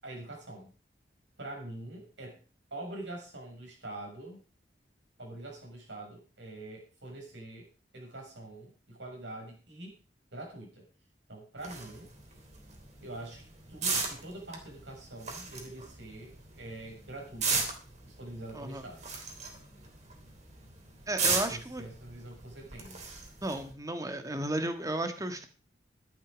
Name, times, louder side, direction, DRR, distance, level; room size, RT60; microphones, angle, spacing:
voice 1, 0.0-0.7 1.4-2.4 2.7-4.4 5.2-7.7 7.9-9.9 10.3-10.8 11.3-12.1 13.0-17.7 18.0-19.1 21.5-23.0, right 1 dB, 80° right, 0 dB, 6.6 m, -44 dB
sound 1, 11.6-23.7, right 4 dB, 40° right, 3.3 m, -37 dB
voice 2, 21.1-21.8 23.4-25.5, right 1 dB, 20° right, 8 dB, 1.5 m, -34 dB
12.5 x 11.5 x 5.1 m, 0.36 s
head